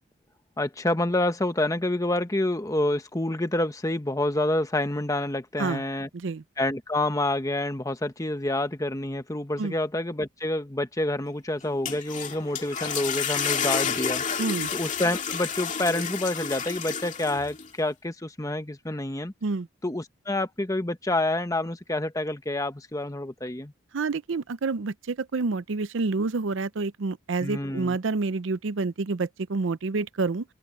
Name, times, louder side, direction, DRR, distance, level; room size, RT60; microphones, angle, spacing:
voice 1, 0.6-6.1 6.6-14.2 14.7-19.3 19.8-23.7 27.4-28.0, left 1 dB, 15° left, 1.1 m, -28 dB
sound 1, 11.6-17.7, left 6 dB, 40° left, 2.3 m, -30 dB
voice 2, 14.4-14.7 19.4-19.7 23.9-30.4, right 3 dB, 70° right, 0.6 m, -28 dB
head